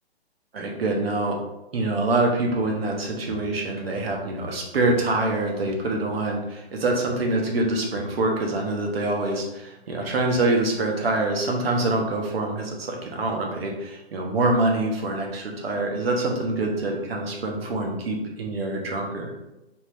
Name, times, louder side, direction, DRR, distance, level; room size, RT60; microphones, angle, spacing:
voice 1, 0.5-1.4 1.7-19.3, right 2 dB, 65° right, 1 dB, 1.1 m, -25 dB
5.1 x 2.5 x 3.4 m, 0.95 s
hypercardioid pair, 155°, 32 cm